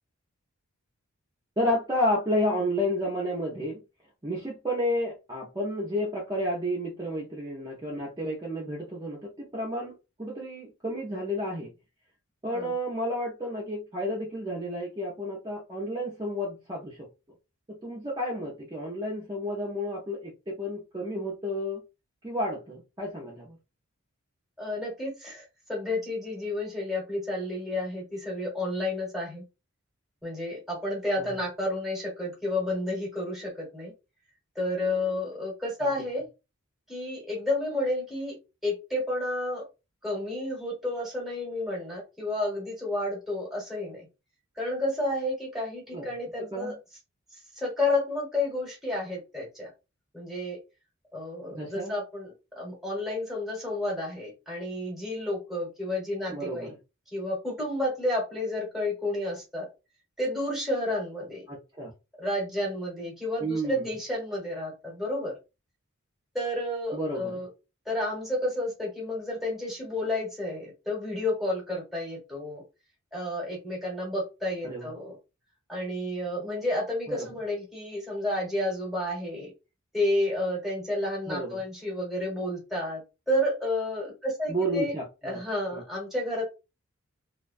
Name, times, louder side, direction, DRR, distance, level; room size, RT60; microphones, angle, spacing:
voice 1, 1.6-3.8 4.2-11.7 12.4-17.1 17.7-21.8 22.2-23.6 31.2-31.3 35.8-35.9 45.9-46.1 46.4-46.8 51.5-51.9 56.3-56.7 61.5-61.9 63.4-63.9 66.9-67.4 74.6-74.9 77.1-77.3 81.3-81.6 84.5-85.4 85.7-85.8, equal, 20° right, -3 dB, 0.5 m, -31 dB
voice 2, 24.6-25.4 25.7-29.4 30.2-33.9 34.5-36.2 36.9-38.4 38.6-39.6 40.0-44.1 44.6-46.7 47.3-49.7 50.1-50.6 51.1-56.7 57.1-59.7 60.2-61.5 62.2-65.3 66.3-67.5 67.9-72.6 73.1-75.2 75.7-79.5 79.9-83.0 83.3-84.9 85.2-86.4, left 1 dB, ahead, -4 dB, 1.1 m, -31 dB
2.3 x 2.1 x 2.5 m, 0.28 s
head